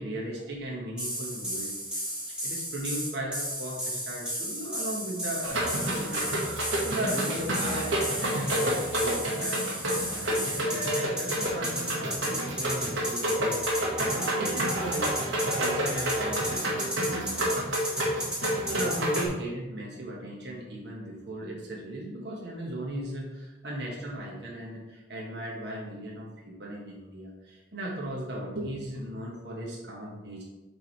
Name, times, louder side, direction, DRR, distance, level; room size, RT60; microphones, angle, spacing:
voice 1, 0.0-6.4 6.8-7.9 8.2-15.2 15.5-17.4 18.4-30.4, right 1 dB, 65° right, -3 dB, 1.2 m, -37 dB
sound 1, 1.0-19.3, equal, 5° right, 1.3 m, -33 dB
sound 2, 5.4-19.3, right 1 dB, 90° right, 1.4 m, -29 dB
6.8 x 3.4 x 4.5 m, 1.1 s
head